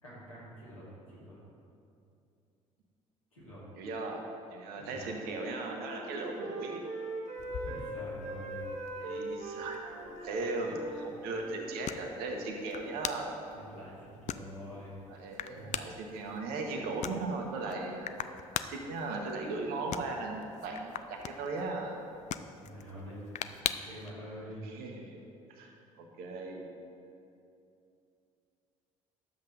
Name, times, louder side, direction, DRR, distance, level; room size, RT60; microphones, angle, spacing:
voice 1, 0.0-1.4 3.3-3.7 4.8-5.0 7.6-8.7 13.5-15.0 15.5-15.8 16.7-16.9 22.6-23.5 23.8-24.7, equal, 85° left, -8 dB, 2.5 m, -46 dB
voice 2, 3.8-4.2 4.5-6.9 9.0-13.3 15.1-18.3 18.6-22.0 24.7-25.2 25.5-26.7, right 3 dB, 60° right, 2 dB, 1.3 m, -37 dB
Wind instrument woodwind instrument, 4.8-11.6, right 2 dB, 40° right, 1.8 m, -41 dB
sound 1, 7.4-24.1, left 9 dB, 45° left, 0.4 m, -43 dB
11.0 x 7.6 x 4.0 m, 2.6 s
figure-of-eight pair, 50°, 17 cm